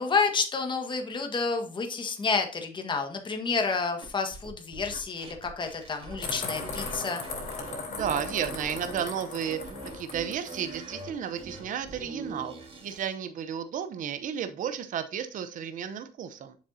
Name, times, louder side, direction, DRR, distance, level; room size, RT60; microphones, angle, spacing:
voice 1, 0.0-7.2, left 4 dB, 30° left, 4 dB, 1.6 m, -29 dB
sound 1, 4.0-7.0 7.2-9.1 9.4-13.1, right 2 dB, 30° right, 2.7 m, -42 dB
sound 2, 6.2-10.6, left 4 dB, 45° left, 3.6 m, -38 dB
voice 2, 7.9-12.5 12.8-16.6, right 8 dB, 50° right, 10 dB, 0.7 m, -33 dB
7.4 x 6.4 x 2.7 m, 0.36 s
cardioid pair, 110°, 17 cm